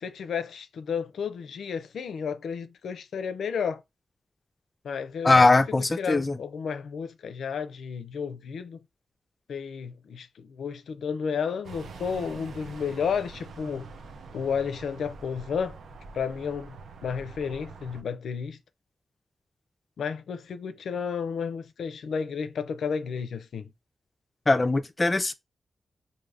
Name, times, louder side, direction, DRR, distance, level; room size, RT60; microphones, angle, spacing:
voice 1, 0.0-3.8 4.8-5.5 6.0-8.8 9.5-13.9 14.3-15.8 16.1-16.8 17.0-18.6 20.0-23.7, left 6 dB, 90° left, 0.4 m, -32 dB
voice 2, 5.2-6.4 24.5-25.3, left 3 dB, 30° left, 0.4 m, -21 dB
sound 1, 11.6-18.0, right 4 dB, 85° right, 0.5 m, -45 dB
4.7 x 2.6 x 2.5 m
cardioid pair, 90°, 0 cm